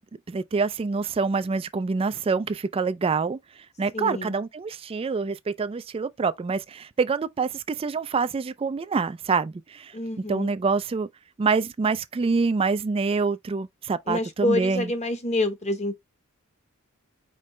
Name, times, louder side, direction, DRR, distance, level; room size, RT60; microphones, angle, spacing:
voice 1, 0.3-3.4 3.8-9.9 10.3-11.1 11.4-14.9, right 4 dB, 25° right, 0.3 m, -26 dB
voice 2, 3.9-4.4 9.9-10.5 14.1-15.9, left 1 dB, 35° left, 1.0 m, -27 dB
5.2 x 3.1 x 3.2 m
head